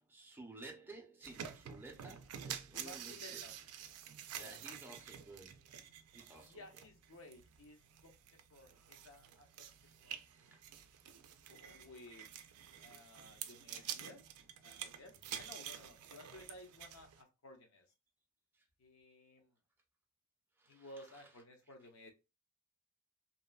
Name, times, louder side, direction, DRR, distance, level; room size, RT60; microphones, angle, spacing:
voice 1, 0.0-3.4 4.3-5.6 6.1-6.6 10.5-10.6 20.6-20.8, right 2 dB, 10° right, 0.5 m, -54 dB
sound 1, 1.2-17.2, right 9 dB, 90° right, 0.4 m, -49 dB
voice 2, 2.7-3.5 4.3-4.6 6.4-10.6 11.5-12.3 12.8-14.2 14.6-17.9 18.8-19.5 20.7-22.1, left 1 dB, 70° left, 0.7 m, -56 dB
2.8 x 2.1 x 2.3 m
head